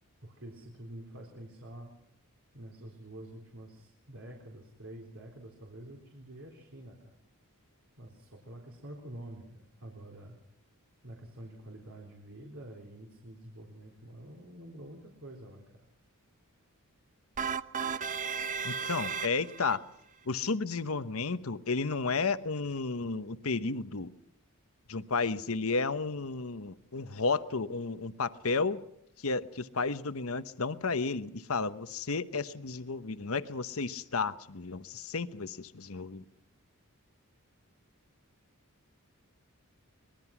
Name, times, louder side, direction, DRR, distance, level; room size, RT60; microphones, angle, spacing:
voice 1, 0.2-1.9 2.5-7.2 8.0-10.4 11.0-15.8, right 1 dB, 65° right, 0 dB, 3.9 m, -48 dB
sound 1, 17.4-19.8, right 6 dB, 35° right, 0.8 m, -34 dB
voice 2, 18.6-19.8 20.3-24.1 24.9-28.8 29.2-36.2, left 4 dB, 70° left, 12 dB, 1.0 m, -32 dB
25.0 x 21.0 x 6.0 m, 0.70 s
head